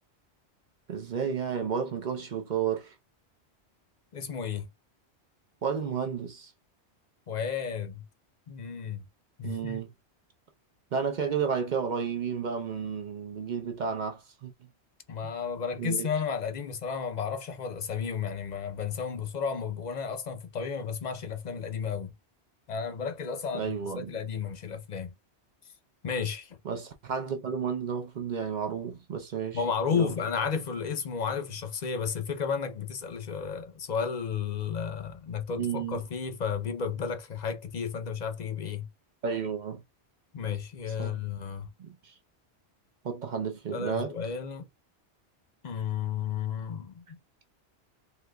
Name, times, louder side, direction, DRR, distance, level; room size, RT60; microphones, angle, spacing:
voice 1, 0.9-2.9 5.6-6.5 9.4-9.9 10.9-14.5 15.8-16.1 23.5-24.1 26.7-29.6 29.9-30.1 35.5-36.0 39.2-39.8 41.0-41.1 41.8-42.1 43.0-44.1, right 6 dB, 55° right, 0.6 m, -32 dB
voice 2, 4.1-4.7 7.3-8.0 8.5-9.0 9.4-9.8 15.1-22.1 22.7-25.1 26.0-26.6 29.5-38.9 40.3-41.7 43.7-44.7 45.6-47.0, left 6 dB, 50° left, 0.6 m, -33 dB
3.8 x 2.8 x 2.2 m
omnidirectional pair, 1.1 m